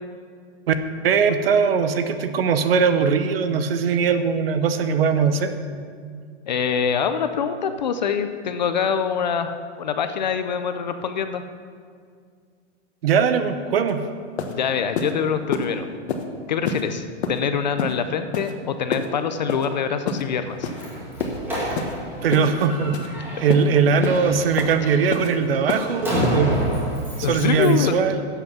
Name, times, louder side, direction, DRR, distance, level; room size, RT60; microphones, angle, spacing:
voice 1, 1.0-5.5 13.0-14.0 21.5-21.9 22.2-23.0 23.4-26.6 27.2-28.2, right 6 dB, 55° right, 10 dB, 0.9 m, -20 dB
voice 2, 6.5-11.4 14.5-15.9 16.5-20.7 23.2-23.3 27.2-28.0, left 7 dB, 40° left, 9 dB, 0.5 m, -24 dB
sound 1, 13.9-14.0 14.4-14.5 15.0-15.1 15.5-15.7 16.1-16.2 16.7-16.8 17.2-17.4 17.8-17.9 18.3-18.5 18.9-19.1 19.5-19.7 20.1-20.2 20.6-20.8 21.2-21.4 21.8-21.9 22.3-22.5 22.9-23.1 23.5-23.6 24.0-24.2 24.6-24.7 25.1-25.3 25.7-25.9 26.2-26.4, left 5 dB, 65° left, 1.3 m, -27 dB
Slam, 20.5-27.9, equal, 5° right, 1.8 m, -29 dB
11.0 x 7.9 x 6.0 m, 2.1 s
supercardioid pair, 175°, 36 cm